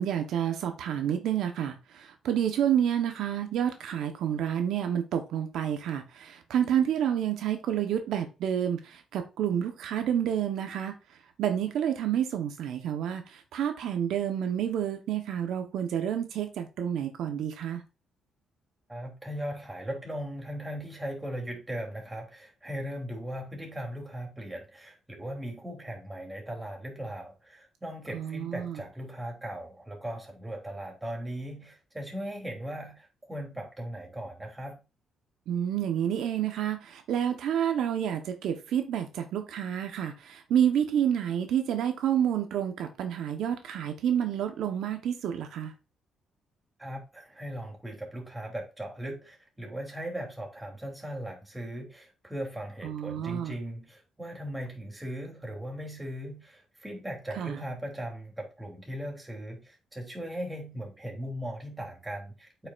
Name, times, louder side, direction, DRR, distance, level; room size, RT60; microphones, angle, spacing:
voice 1, 0.0-10.9 11.4-17.8 28.1-28.8 35.5-45.7 52.8-53.5 57.4-57.6, right 9 dB, 80° right, 1.0 m, -29 dB
voice 2, 18.9-34.8 46.8-62.7, equal, 15° right, 3.1 m, -38 dB
8.3 x 5.7 x 2.5 m
cardioid pair, 90°, 0 cm